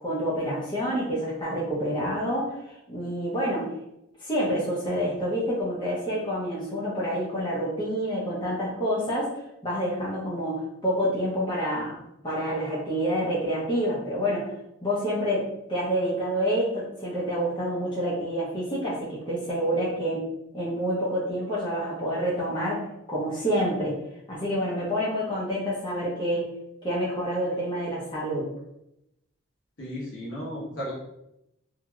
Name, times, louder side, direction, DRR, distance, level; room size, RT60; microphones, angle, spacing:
voice 1, 0.0-3.7 4.2-14.5 14.8-20.3 20.5-24.0 24.3-26.5 26.8-28.5, equal, 25° left, -7 dB, 0.7 m, -28 dB
voice 2, 29.8-30.9, equal, 75° left, -6 dB, 1.2 m, -34 dB
3.0 x 2.7 x 2.3 m, 0.83 s
head